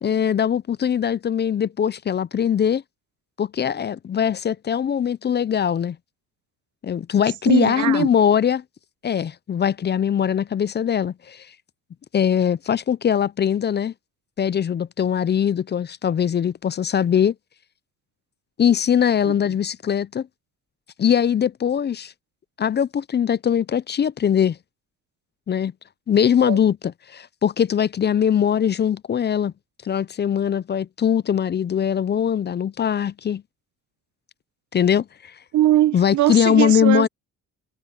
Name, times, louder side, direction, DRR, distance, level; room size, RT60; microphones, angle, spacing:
voice 1, 0.0-2.8 3.4-6.0 6.8-8.6 9.0-11.5 12.1-13.9 14.4-17.3 18.6-20.3 21.0-22.1 22.6-24.6 25.5-25.7 26.1-29.5 29.8-33.4 34.7-35.3 35.9-37.1, left 8 dB, 35° left, 0.5 m, -21 dB
voice 2, 7.5-8.1 19.2-19.3 26.4-26.6 35.5-37.1, right 14 dB, 75° right, 0.9 m, -20 dB
cardioid pair, 90°, 30 cm